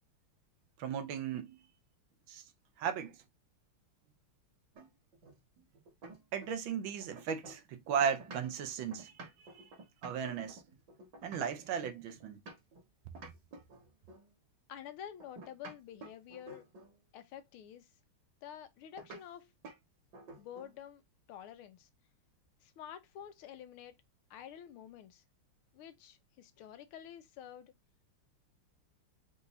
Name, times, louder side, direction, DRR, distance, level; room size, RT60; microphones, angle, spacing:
voice 1, 0.8-1.6 2.3-2.4 2.8-3.2 6.3-9.1 9.4-9.6 10.0-10.6 11.2-12.4, right 7 dB, 75° right, 1.5 m, -36 dB
sound 1, 4.7-6.7 7.0-12.8 13.1-14.3 15.2-17.0 19.0-19.2 19.6-19.8 20.1-20.8, right 2 dB, 60° right, 2.0 m, -52 dB
voice 2, 14.7-16.6 17.1-17.9 18.4-19.5 20.4-21.0 21.3-21.9 22.6-23.9 24.3-25.2 25.7-27.7, left 9 dB, 90° left, 1.6 m, -49 dB
4.7 x 2.6 x 4.0 m
omnidirectional pair, 2.3 m